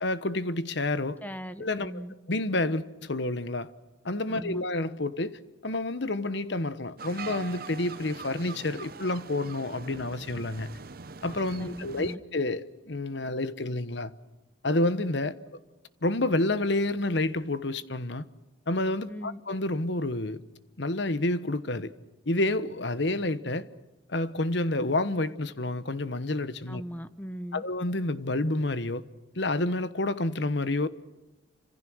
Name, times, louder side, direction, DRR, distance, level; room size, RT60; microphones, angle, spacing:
voice 1, 0.0-1.2 1.6-1.9 2.3-3.7 4.0-10.7 11.2-14.1 14.6-15.3 16.0-18.2 18.7-20.4 20.8-21.9 22.3-23.7 24.1-26.8 27.5-29.0 29.3-30.9, left 2 dB, 60° left, 1.2 m, -29 dB
voice 2, 1.2-2.1 4.3-4.6 11.6-12.2 19.1-19.4 26.7-27.6, equal, 10° left, 1.0 m, -39 dB
sound 1, 7.0-12.2, right 5 dB, 50° right, 0.8 m, -42 dB
28.5 x 26.5 x 6.4 m
head